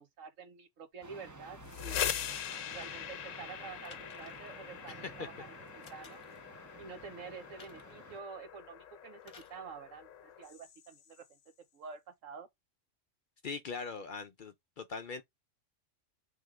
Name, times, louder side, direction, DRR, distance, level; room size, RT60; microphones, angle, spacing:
voice 1, 0.0-2.0 2.7-5.5 5.7-6.2 6.8-11.4 11.7-12.5, right 5 dB, 90° right, 1.4 m, -48 dB
sound 1, 1.0-8.2, right 3 dB, 25° right, 0.4 m, -53 dB
sound 2, 1.5-11.2, left 10 dB, 90° left, 1.0 m, -42 dB
sound 3, 2.1-3.1 3.8-4.5 5.8-6.4 7.6-8.0 9.2-9.6 10.6-10.7, left 4 dB, 30° left, 0.8 m, -57 dB
voice 2, 4.9-5.3 13.4-15.2, left 4 dB, 55° left, 0.6 m, -41 dB
3.4 x 3.2 x 4.8 m
omnidirectional pair, 1.3 m